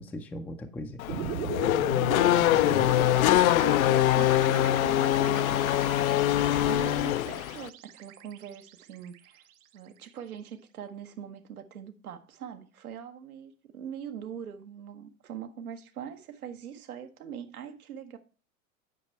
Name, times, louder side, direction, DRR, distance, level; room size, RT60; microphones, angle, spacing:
voice 1, 0.0-1.3 2.5-2.9, left 1 dB, 5° left, 0.3 m, -39 dB
Race car auto racing / Accelerating revving vroom, 1.0-7.7, left 14 dB, 75° left, 0.5 m, -24 dB
sound 1, 1.1-9.4, right 10 dB, 70° right, 1.2 m, -38 dB
voice 2, 3.0-9.4 9.7-18.2, right 8 dB, 90° right, 1.1 m, -42 dB
8.8 x 4.7 x 4.4 m
hypercardioid pair, 110°, 42 cm